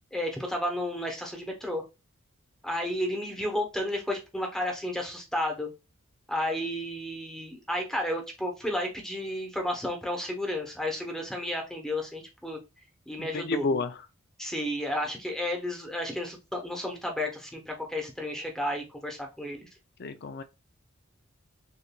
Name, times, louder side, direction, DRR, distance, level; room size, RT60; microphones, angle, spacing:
voice 1, 0.1-1.8 2.6-5.7 6.3-12.6 13.1-13.6 14.4-19.7, left 1 dB, ahead, 0.9 m, -32 dB
voice 2, 13.2-13.9 20.0-20.4, left 3 dB, 50° left, 0.5 m, -30 dB
6.8 x 2.6 x 2.2 m
head